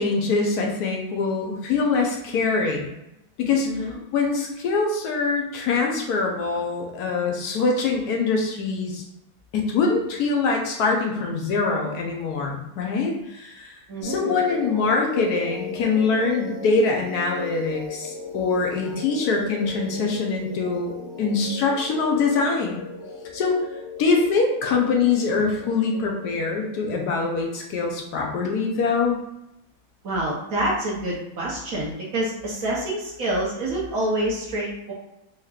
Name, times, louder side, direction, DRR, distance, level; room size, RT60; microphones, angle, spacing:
voice 1, 0.0-2.9 3.4-3.7 4.1-9.0 9.5-22.8 23.3-23.6 24.0-29.2, left 4 dB, 65° left, 0 dB, 1.0 m, -24 dB
voice 2, 13.9-14.4 30.0-34.9, right 1 dB, 55° right, -4 dB, 1.0 m, -27 dB
sound 1, 14.0-27.5, left 3 dB, 40° left, 1.1 m, -36 dB
4.7 x 2.9 x 2.4 m, 0.87 s
omnidirectional pair, 2.2 m